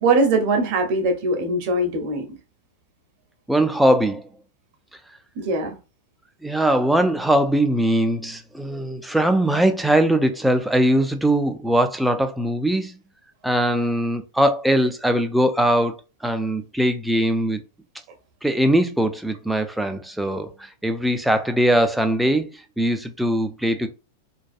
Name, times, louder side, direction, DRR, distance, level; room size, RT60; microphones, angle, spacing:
voice 1, 0.0-2.3 5.4-5.8, right 2 dB, 55° right, 0.7 m, -21 dB
voice 2, 3.5-4.3 6.4-13.0 13.4-16.0 16.2-17.6 18.4-23.9, right 1 dB, 5° right, 0.4 m, -21 dB
2.6 x 2.2 x 2.4 m
hypercardioid pair, 100°, 0 cm